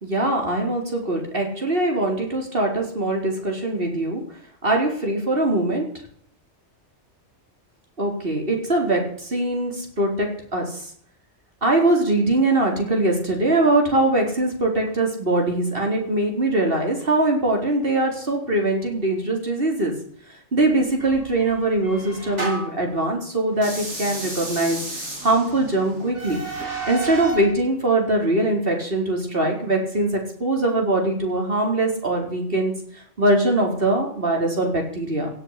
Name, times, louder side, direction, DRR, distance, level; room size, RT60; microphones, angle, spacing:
voice 1, 0.0-4.2 4.6-5.8 8.0-10.8 11.6-19.9 20.5-24.8 25.2-26.4 26.9-30.1 30.4-32.7 33.2-35.3, right 2 dB, 50° right, 1 dB, 4.6 m, -22 dB
sound 1, 21.0-22.8 23.5-27.5, right 2 dB, 80° right, 6.4 m, -32 dB
17.0 x 7.4 x 8.4 m, 0.62 s
omnidirectional pair, 1.2 m